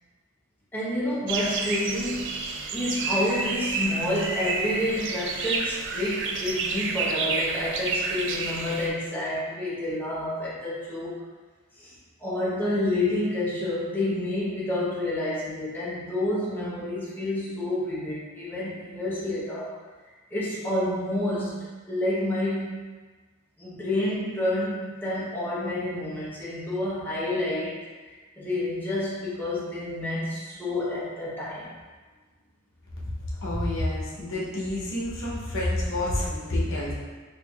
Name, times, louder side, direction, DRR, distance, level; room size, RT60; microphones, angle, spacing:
voice 1, 0.7-11.2 11.8-19.7 20.3-22.7 23.6-27.9 28.4-31.7, left 1 dB, 10° left, -9 dB, 0.8 m, -29 dB
sound 1, 1.3-8.9, right 4 dB, 55° right, 0.4 m, -30 dB
voice 2, 33.4-36.9, left 1 dB, 60° left, -6 dB, 0.8 m, -28 dB
4.5 x 2.6 x 2.3 m, 1.4 s
head